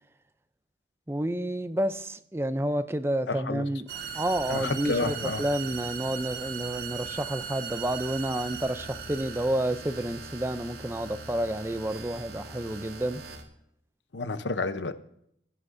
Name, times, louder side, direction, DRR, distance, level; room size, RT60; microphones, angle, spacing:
voice 1, 1.1-3.9 4.1-13.2, right 1 dB, 15° right, 0.5 m, -30 dB
voice 2, 3.3-3.6 4.5-5.4 14.1-14.9, left 3 dB, 90° left, 0.8 m, -30 dB
sound 1, 3.9-13.4, right 6 dB, 60° right, 1.6 m, -39 dB
16.0 x 11.5 x 2.7 m
head